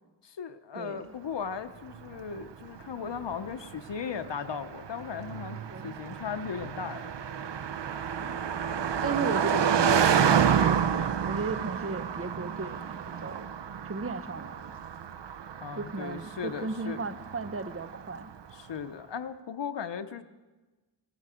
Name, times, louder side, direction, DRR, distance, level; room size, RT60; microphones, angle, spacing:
voice 1, 0.2-7.1 15.6-17.0 18.5-20.2, left 7 dB, 90° left, 9 dB, 0.7 m, -37 dB
Car passing by, 1.9-18.3, right 7 dB, 85° right, 0.6 m, -30 dB
voice 2, 9.0-13.5 13.9-14.7 15.8-18.3, right 4 dB, 35° right, 12 dB, 0.7 m, -36 dB
18.0 x 13.5 x 5.0 m, 1.2 s
wide cardioid pair, 70°, 41 cm